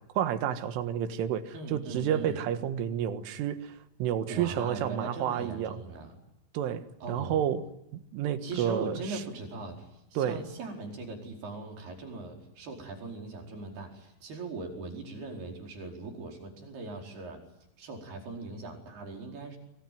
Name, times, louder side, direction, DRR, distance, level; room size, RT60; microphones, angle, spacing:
voice 1, 0.2-5.8 6.5-7.7 7.9-9.2 10.2-10.4, right 9 dB, 75° right, 10 dB, 3.9 m, -30 dB
voice 2, 1.5-2.4 4.3-6.1 7.0-7.4 8.4-17.4 17.8-19.6, right 3 dB, 50° right, 2 dB, 6.5 m, -40 dB
25.5 x 24.0 x 9.3 m, 0.83 s
omnidirectional pair, 5.9 m